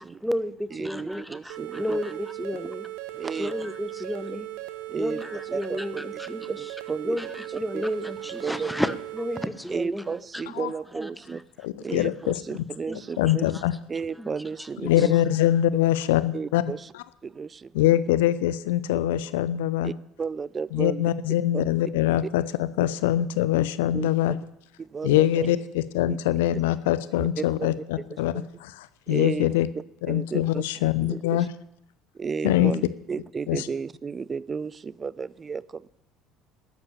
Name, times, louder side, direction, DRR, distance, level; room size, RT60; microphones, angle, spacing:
voice 1, 0.0-2.9 3.4-4.5 5.0-6.6 7.0-10.0 10.9-11.1 11.9-12.0 12.9-13.0 14.2-14.3, equal, ahead, 1.0 m, -31 dB
voice 2, 0.7-2.0 3.1-3.5 4.0-4.1 4.9-7.8 8.4-8.7 9.7-11.4 11.8-13.4 13.9-15.1 16.3-16.9 17.2-18.0 19.8-21.1 21.5-21.6 23.9-24.4 24.8-25.5 26.1-26.2 27.2-27.8 28.1-28.4 29.1-29.6 30.1-31.5 32.1-35.9, right 5 dB, 30° right, 0.4 m, -33 dB
sound 1, 1.5-9.5, right 16 dB, 60° right, 1.0 m, -38 dB
voice 3, 11.6-12.3 13.2-13.7 14.8-16.6 17.7-19.9 20.7-24.3 25.0-28.3 28.6-29.7 30.0-31.5 32.4-32.7 33.5-33.7, left 13 dB, 65° left, 0.7 m, -23 dB
12.5 x 10.5 x 7.1 m
figure-of-eight pair, 60°, 0 cm